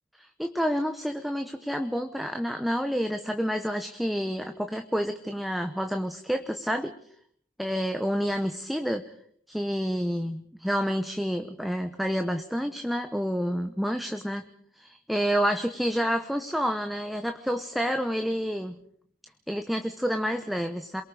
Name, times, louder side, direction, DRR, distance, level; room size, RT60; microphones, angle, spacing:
voice 1, 0.2-6.9 7.6-9.0 9.5-14.5 14.7-18.8 19.5-21.0, equal, ahead, 6 dB, 1.0 m, -29 dB
28.0 x 23.0 x 5.0 m, 0.62 s
head